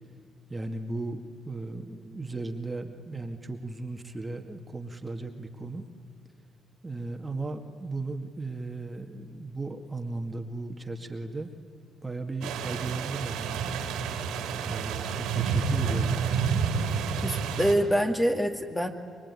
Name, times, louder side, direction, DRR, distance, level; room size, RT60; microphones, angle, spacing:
voice 1, 0.5-5.8 6.8-11.5 12.0-13.7 14.6-16.2, right 2 dB, 20° right, 5 dB, 2.0 m, -36 dB
sound 1, 12.4-17.7, right 6 dB, 90° right, 3.2 m, -29 dB
voice 2, 17.2-18.9, equal, 10° left, 5 dB, 2.4 m, -25 dB
25.0 x 23.5 x 9.8 m, 2.2 s
cardioid pair, 90°, 0 cm